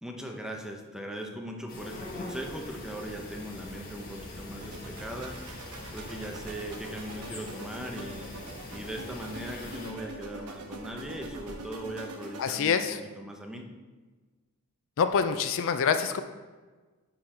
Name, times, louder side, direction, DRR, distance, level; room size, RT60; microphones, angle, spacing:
voice 1, 0.0-5.6 5.9-8.3 8.7-13.7, right 1 dB, 5° right, 2 dB, 0.8 m, -39 dB
sound 1, 1.7-9.9, left 1 dB, 45° left, 1.5 m, -43 dB
sound 2, 4.6-12.6, right 2 dB, 85° right, 1.0 m, -44 dB
voice 2, 12.4-13.0 15.0-16.2, left 6 dB, 60° left, 9 dB, 0.4 m, -26 dB
9.7 x 4.0 x 4.3 m, 1.3 s
head